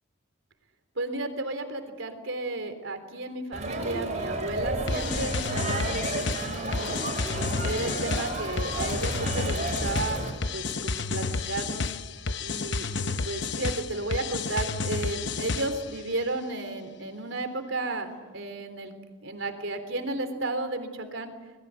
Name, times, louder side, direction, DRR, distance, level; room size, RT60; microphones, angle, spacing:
voice 1, 1.0-7.0 7.6-10.2 10.5-11.9 12.4-18.9 19.2-21.3, right 2 dB, 70° right, 7 dB, 3.6 m, -33 dB
Crowd, 3.5-10.3, right 2 dB, 35° right, 6.4 m, -32 dB
sound 1, 4.9-15.9, left 4 dB, 60° left, 0.9 m, -31 dB
26.5 x 21.5 x 8.4 m, 1.3 s
head